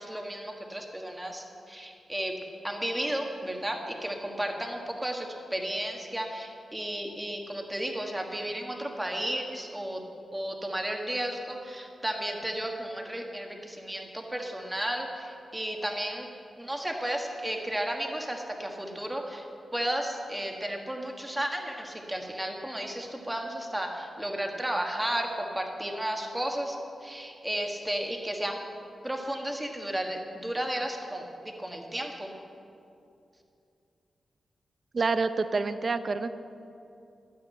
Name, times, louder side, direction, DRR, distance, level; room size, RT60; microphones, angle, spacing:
voice 1, 0.0-2.4 2.6-10.0 10.3-16.3 16.6-19.5 19.7-28.6 29.0-32.3, right 1 dB, 10° right, 2 dB, 1.4 m, -33 dB
voice 2, 34.9-36.4, right 4 dB, 35° right, 11 dB, 0.5 m, -27 dB
12.5 x 9.2 x 8.8 m, 2.6 s
wide cardioid pair, 155°, 0 cm